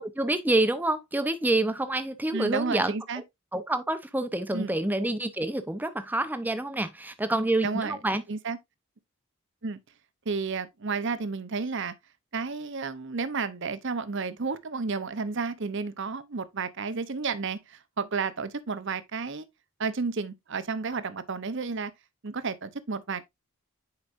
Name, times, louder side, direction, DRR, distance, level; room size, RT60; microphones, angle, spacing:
voice 1, 0.0-2.9 3.5-8.2, right 2 dB, 10° right, 0.7 m, -27 dB
voice 2, 2.3-3.2 4.5-4.8 7.6-8.0 8.3-8.6 9.6-9.8 10.3-11.9 12.3-19.4 19.8-21.9 22.2-23.2, right 4 dB, 55° right, 0.7 m, -31 dB
9.7 x 4.8 x 2.5 m
head